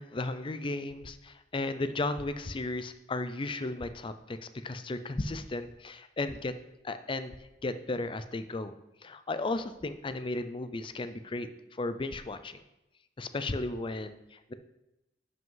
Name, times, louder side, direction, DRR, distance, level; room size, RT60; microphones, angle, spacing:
voice 1, 0.0-6.5 6.8-7.3 7.6-8.7 9.0-12.6 13.2-14.5, left 2 dB, 30° left, 11 dB, 0.5 m, -35 dB
10.5 x 5.2 x 3.9 m, 0.93 s
head